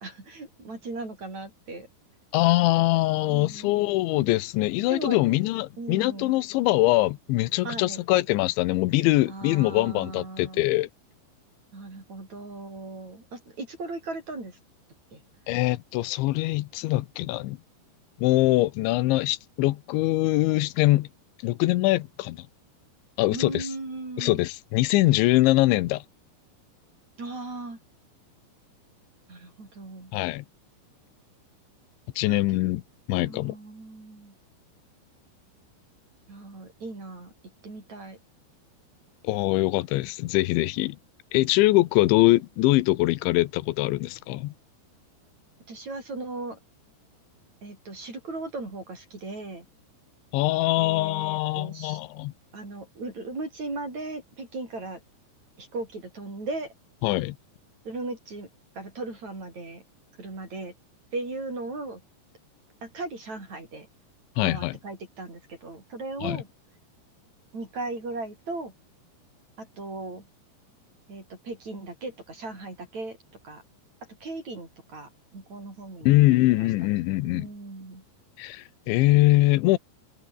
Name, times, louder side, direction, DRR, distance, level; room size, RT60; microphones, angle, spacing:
voice 1, 0.0-1.9 3.3-3.8 4.9-5.2 5.8-6.4 7.6-8.0 9.3-10.6 11.7-14.6 15.1-15.2 23.3-24.4 27.2-27.8 29.3-30.1 32.3-32.6 33.1-34.4 36.3-37.3 37.6-38.2 45.7-46.6 47.6-49.7 50.8-52.0 52.5-55.0 55.6-56.7 57.9-58.5 58.8-59.8 60.2-60.7 61.1-62.0 62.8-63.9 64.4-66.5 67.5-68.7 69.6-70.2 71.1-73.2 73.4-73.6 74.2-76.7 77.2-78.0, right 2 dB, 40° right, 9.1 m, -37 dB
voice 2, 2.3-10.9 15.5-17.6 18.2-21.1 21.4-22.5 23.2-23.7 24.2-26.0 30.1-30.4 32.2-32.8 33.1-33.6 39.2-41.0 41.3-44.5 50.3-52.3 57.0-57.4 64.4-64.8 66.2-66.4 76.0-77.5 78.4-79.8, left 18 dB, 85° left, 3.3 m, -23 dB
omnidirectional pair, 5.2 m